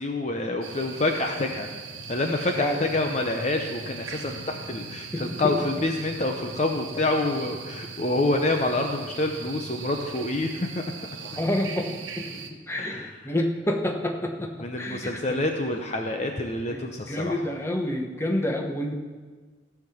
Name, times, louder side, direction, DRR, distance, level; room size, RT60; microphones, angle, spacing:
voice 1, 0.0-1.7 2.1-10.8 12.8-13.1 14.6-17.4, left 2 dB, 35° left, 3 dB, 0.7 m, -27 dB
sound 1, 0.6-12.5, right 4 dB, 85° right, 1.2 m, -39 dB
voice 2, 5.1-5.5 11.4-15.0 15.3-15.4 16.7-18.9, left 1 dB, 15° left, 2 dB, 1.0 m, -29 dB
14.5 x 5.9 x 7.1 m, 1.4 s
head